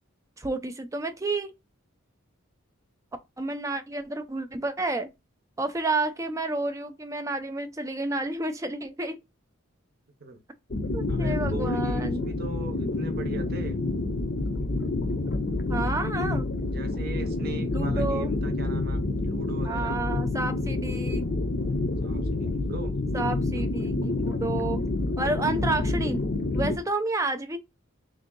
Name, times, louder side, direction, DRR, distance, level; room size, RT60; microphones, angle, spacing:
voice 1, 0.4-1.5 3.4-5.1 5.6-9.2 10.9-12.3 15.7-16.5 17.6-18.3 19.6-21.3 23.1-24.8 25.2-26.2 26.5-27.6, right 2 dB, 15° right, 0.4 m, -30 dB
sound 1, 10.7-26.8, left 2 dB, 45° left, 0.6 m, -28 dB
voice 2, 11.1-13.8 16.7-20.0 22.0-22.9, right 3 dB, 45° right, 0.8 m, -40 dB
3.6 x 2.7 x 3.7 m
head